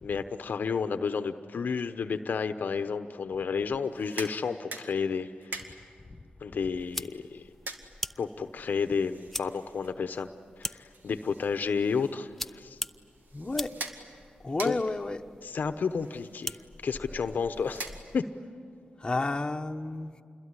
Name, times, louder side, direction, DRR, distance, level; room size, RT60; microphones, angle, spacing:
voice 1, 0.0-5.8 6.4-7.5 8.2-10.3 10.6-12.8 14.6-14.8 15.4-18.3, left 5 dB, 65° left, 9 dB, 0.9 m, -31 dB
sound 1, 3.8-18.5, right 3 dB, 75° right, 2.2 m, -46 dB
sound 2, 6.8-18.2, left 1 dB, 5° left, 0.8 m, -43 dB
voice 2, 13.3-13.7 14.4-15.2 19.0-20.1, left 2 dB, 25° left, 4 dB, 1.2 m, -31 dB
27.5 x 21.5 x 9.8 m, 2.2 s
cardioid pair, 70°, 3 cm